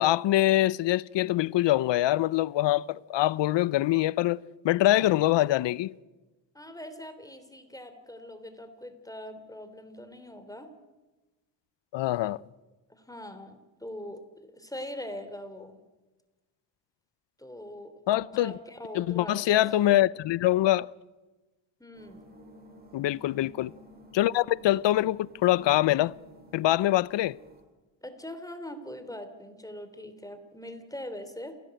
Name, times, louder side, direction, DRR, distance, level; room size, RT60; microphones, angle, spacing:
voice 1, 0.0-4.4 4.6-5.9 11.9-12.4 18.1-18.5 18.9-20.9 22.9-23.7 24.1-26.1 26.5-27.4, left 14 dB, 75° left, 0.7 m, -24 dB
voice 2, 6.5-10.7 12.9-15.8 17.4-19.9 21.8-22.3 28.0-31.6, left 1 dB, 10° left, 3.5 m, -42 dB
sound 1, 21.9-27.6, equal, 20° right, 6.6 m, -53 dB
28.0 x 17.5 x 7.9 m
cardioid pair, 80°, 43 cm